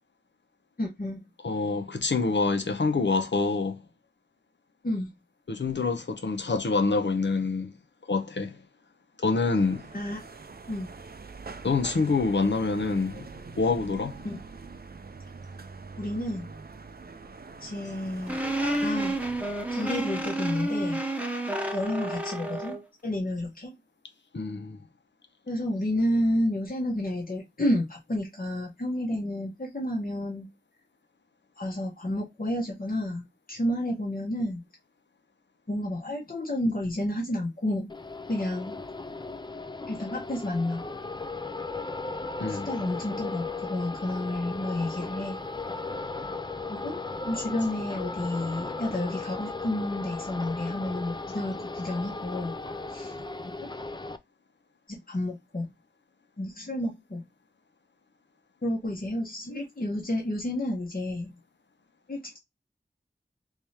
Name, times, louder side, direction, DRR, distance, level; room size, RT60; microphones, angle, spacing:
voice 1, 0.8-1.2 4.8-5.1 9.9-10.2 10.7-10.9 14.2-14.4 16.0-16.5 17.6-18.4 18.8-19.2 19.7-21.0 21.7-22.8 23.0-23.7 25.5-30.5 31.6-34.6 35.7-37.9 38.3-38.8 39.9-40.8 42.5-45.4 46.7-47.0 47.2-52.5 52.9-53.1 53.6-53.7 54.9-55.7 56.4-57.2 58.6-61.3 62.1-62.4, left 1 dB, 55° left, 1.0 m, -30 dB
voice 2, 1.4-3.8 5.5-7.7 8.1-8.6 9.2-9.8 11.6-13.3 13.6-14.2 24.3-24.8 42.4-42.7, left 4 dB, 85° left, 0.7 m, -26 dB
sound 1, 9.6-20.3, right 4 dB, 55° right, 0.5 m, -44 dB
sound 2, 18.3-22.8, right 1 dB, 5° right, 0.8 m, -30 dB
sound 3, 37.9-54.2, left 3 dB, 25° left, 0.4 m, -36 dB
3.4 x 3.2 x 2.8 m
wide cardioid pair, 40°, 18 cm